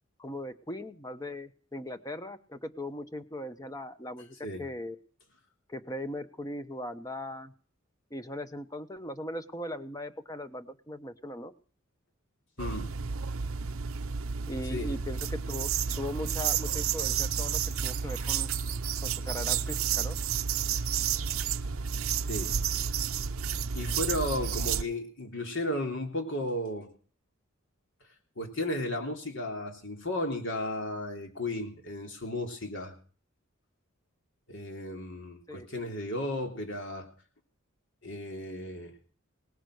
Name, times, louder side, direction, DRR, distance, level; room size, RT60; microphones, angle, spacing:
voice 1, 0.2-5.0 5.7-7.5 8.1-11.5 14.5-18.5 19.0-20.1 35.5-35.7, left 1 dB, 15° left, 10 dB, 1.0 m, -39 dB
voice 2, 12.6-12.9 14.7-14.9 18.0-18.3 22.3-22.6 23.7-26.9 28.4-32.9 34.5-37.1 38.0-38.9, left 1 dB, 60° left, 3 dB, 3.2 m, -34 dB
sound 1, 12.6-24.8, right 7 dB, 75° right, 0.7 m, -31 dB
19.0 x 10.0 x 6.5 m, 0.43 s
head